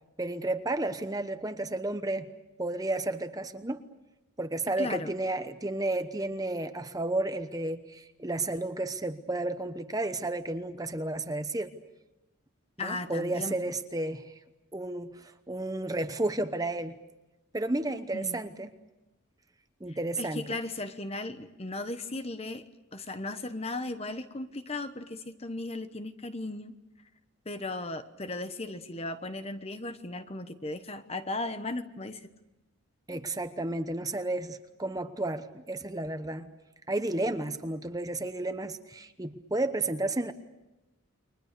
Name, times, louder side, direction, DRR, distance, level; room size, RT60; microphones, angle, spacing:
voice 1, 0.2-2.3 2.6-3.8 4.4-11.7 12.8-14.3 14.7-16.9 17.5-18.7 19.8-20.5 33.1-36.5 36.9-40.3, right 2 dB, 15° right, 9 dB, 0.9 m, -32 dB
voice 2, 4.8-5.1 12.8-13.6 18.1-18.4 20.2-22.6 22.9-26.7 27.4-32.2, left 2 dB, 30° left, 10 dB, 1.1 m, -36 dB
30.0 x 23.5 x 6.8 m, 0.99 s
head